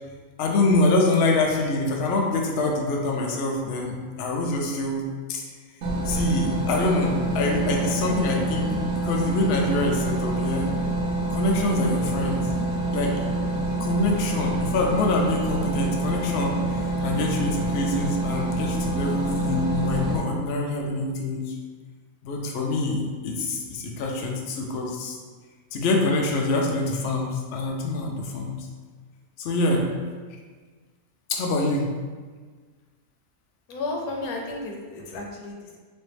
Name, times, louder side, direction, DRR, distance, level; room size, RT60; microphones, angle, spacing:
voice 1, 0.4-5.0 5.3-5.5 6.1-10.7 11.3-12.5 12.9-13.2 13.8-21.5 22.2-25.2 25.7-28.7 29.4-29.9 31.3-31.9, left 2 dB, 60° left, 0 dB, 0.7 m, -25 dB
sound 1, 5.8-20.2, right 2 dB, 75° right, 1.0 m, -26 dB
voice 2, 33.7-35.8, left 2 dB, 90° left, 0 dB, 1.1 m, -33 dB
4.2 x 2.6 x 3.3 m, 1.5 s
omnidirectional pair, 1.5 m